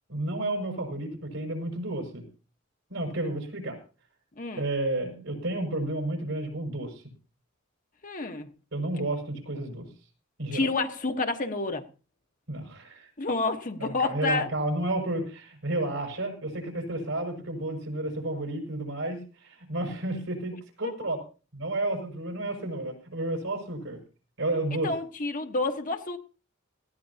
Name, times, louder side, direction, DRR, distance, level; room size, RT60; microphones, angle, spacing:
voice 1, 0.1-2.2 2.9-3.8 4.6-7.0 8.7-9.9 10.4-10.7 12.5-13.1 13.8-21.2 21.5-24.0 24.4-24.9, right 2 dB, 80° right, 6.0 m, -31 dB
voice 2, 4.4-4.7 8.0-8.5 10.5-11.8 13.2-14.5 20.8-20.9 24.8-26.2, left 3 dB, 40° left, 1.2 m, -29 dB
19.0 x 16.0 x 2.8 m
head